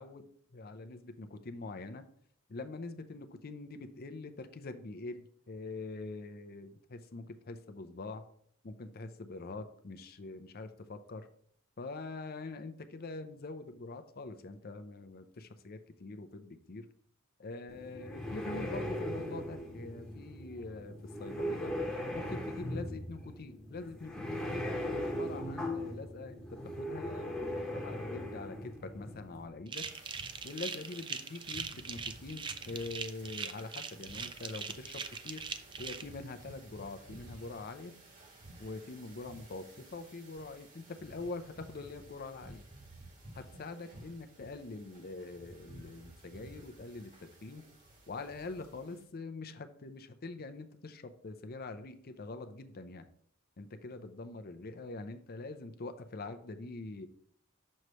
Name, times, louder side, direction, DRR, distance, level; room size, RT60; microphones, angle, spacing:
voice 1, 0.0-2.0 2.5-8.2 8.6-11.3 11.8-16.9 17.4-21.7 22.1-24.6 25.0-29.8 30.4-35.4 35.8-37.9 38.6-42.6 43.3-47.6 48.1-53.1 53.6-57.1, left 3 dB, 50° left, 9 dB, 0.6 m, -44 dB
sound 1, 17.7-29.5, equal, 5° left, 1.1 m, -39 dB
sound 2, 29.7-36.0, right 6 dB, 25° right, 0.4 m, -40 dB
sound 3, 29.7-49.0, right 1 dB, 40° right, 1.4 m, -54 dB
6.5 x 3.1 x 5.5 m, 0.64 s
head